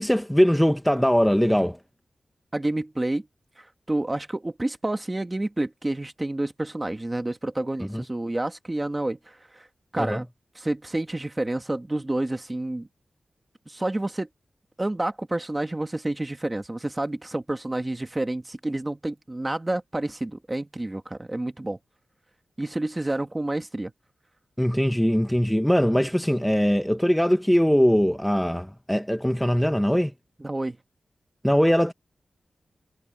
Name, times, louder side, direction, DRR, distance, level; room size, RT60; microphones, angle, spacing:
voice 1, 0.0-1.8 7.9-8.0 10.0-10.2 24.6-30.1 31.4-31.9, equal, ahead, 0.7 m, -21 dB
voice 2, 2.5-3.3 3.6-9.7 9.9-10.3 10.6-12.9 13.7-14.3 14.8-21.8 22.6-23.9 30.4-30.8, right 1 dB, 15° right, 1.7 m, -29 dB
wide cardioid pair, 175°, 0 cm